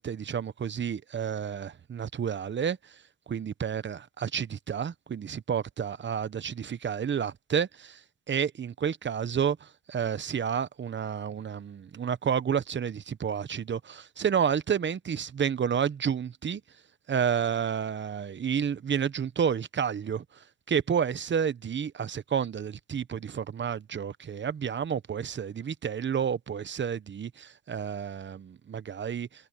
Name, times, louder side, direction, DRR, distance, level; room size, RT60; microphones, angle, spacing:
voice 1, 0.0-3.0 3.3-8.0 8.3-16.6 17.1-29.5, right 7 dB, 40° right, 0.9 m, -30 dB
cardioid pair, 90°, 30 cm